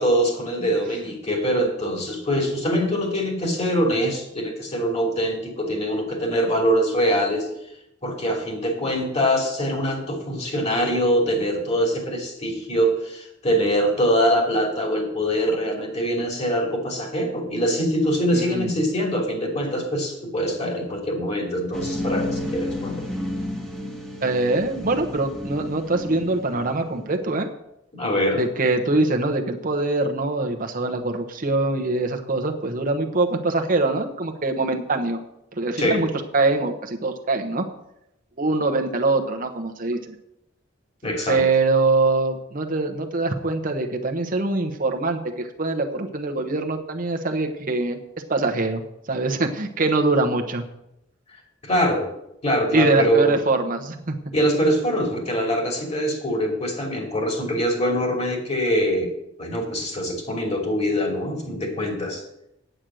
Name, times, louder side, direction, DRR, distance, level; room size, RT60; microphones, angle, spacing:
voice 1, 0.0-7.5 8.0-23.1 27.9-28.4 35.8-36.0 41.0-41.4 51.7-52.0 52.4-53.4 54.3-59.1 59.4-62.2, equal, 35° left, 1 dB, 2.9 m, -23 dB
voice 2, 18.3-18.7 24.2-27.5 28.4-35.2 35.6-36.1 36.3-37.6 38.4-40.1 41.3-48.0 48.3-48.8 49.1-50.6 52.7-54.2, right 2 dB, 45° right, 4 dB, 1.0 m, -23 dB
sound 1, 21.7-27.0, left 1 dB, 5° left, 1.4 m, -31 dB
9.0 x 8.5 x 6.3 m, 0.82 s
head